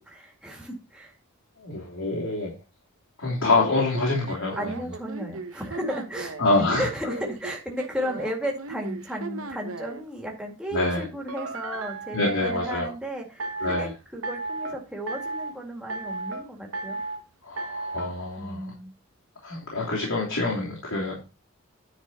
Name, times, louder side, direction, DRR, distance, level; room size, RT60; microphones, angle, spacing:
voice 1, 0.1-1.1 4.6-17.0 18.4-18.9, equal, 5° right, -1 dB, 2.1 m, -34 dB
voice 2, 1.6-2.5 3.2-4.7 6.4-6.9 10.7-11.0 12.1-12.9 13.6-13.9 17.4-18.7 19.4-21.2, left 2 dB, 90° left, -4 dB, 3.0 m, -26 dB
sound 1, 3.6-6.5 7.1-10.0 11.3-12.9 13.4-13.9 14.2-14.8 15.1-15.5 15.9-16.4 16.7-17.2 17.6-18.1, right 3 dB, 75° right, 1.1 m, -35 dB
10.0 x 4.4 x 5.6 m, 0.29 s
head